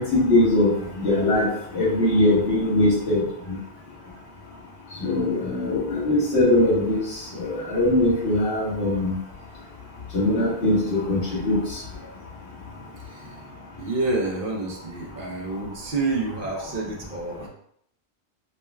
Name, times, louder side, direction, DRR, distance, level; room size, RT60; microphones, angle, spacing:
voice 1, 0.0-1.5 1.7-3.2 3.5-3.6 5.0-7.0 7.4-9.2 10.1-11.6, left 1 dB, 90° left, -9 dB, 1.6 m, -21 dB
voice 2, 13.0-13.4 13.8-17.5, right 3 dB, 55° right, -2 dB, 0.9 m, -28 dB
5.3 x 2.1 x 2.3 m, 0.68 s
omnidirectional pair, 1.1 m